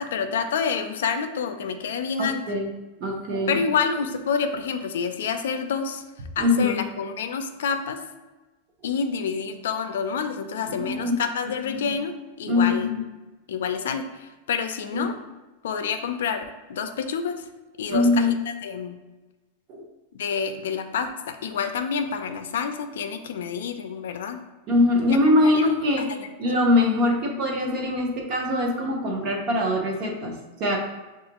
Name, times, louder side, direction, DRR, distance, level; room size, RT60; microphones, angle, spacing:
voice 1, 0.0-2.6 3.5-6.0 6.4-8.0 8.8-12.9 13.5-15.1 15.6-16.4 16.7-17.4 17.8-18.9 20.1-24.4 25.1-25.2 25.4-26.3, left 6 dB, 85° left, 7 dB, 0.4 m, -28 dB
voice 2, 2.2-2.7 3.0-3.6 6.4-6.8 10.8-11.2 11.6-11.9 12.5-13.0 14.9-15.1 17.9-18.3 19.7-19.8 24.7-26.1 26.4-30.8, left 2 dB, 30° right, 1 dB, 0.7 m, -22 dB
6.5 x 2.4 x 2.9 m, 1.1 s
supercardioid pair, 175°, 0 cm